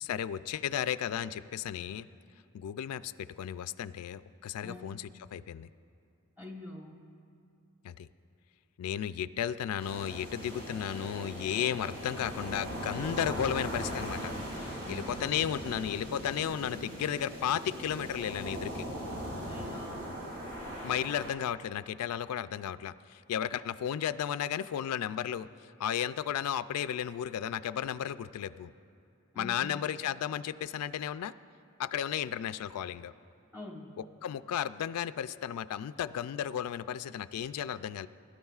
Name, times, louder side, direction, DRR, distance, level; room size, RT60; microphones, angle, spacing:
voice 1, 0.0-2.1 2.5-5.7 7.8-8.1 8.8-14.3 14.6-18.9 20.8-25.5 25.8-28.7 29.4-31.3 31.8-33.1 34.2-38.1, left 9 dB, 85° left, 15 dB, 0.3 m, -34 dB
voice 2, 6.4-6.9 14.8-15.2 19.5-20.1 29.3-29.8 33.5-33.9, left 1 dB, 10° right, -1 dB, 1.1 m, -45 dB
sound 1, 9.8-21.3, equal, 50° right, 3.2 m, -39 dB
22.0 x 12.0 x 2.4 m, 2.6 s
head